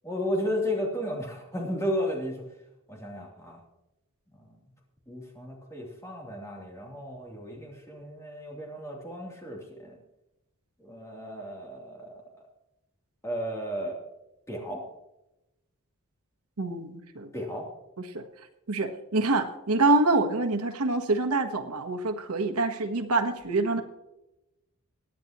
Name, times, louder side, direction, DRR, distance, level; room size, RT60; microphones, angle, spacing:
voice 1, 0.0-2.4 2.9-3.6 5.1-9.9 10.8-12.1 13.2-14.0 14.5-14.8 17.3-17.6, equal, 15° left, -2 dB, 3.0 m, -33 dB
voice 2, 16.6-17.3 18.0-18.2 18.7-23.8, right 2 dB, 90° right, 6 dB, 1.2 m, -26 dB
23.5 x 9.6 x 3.0 m, 0.92 s
head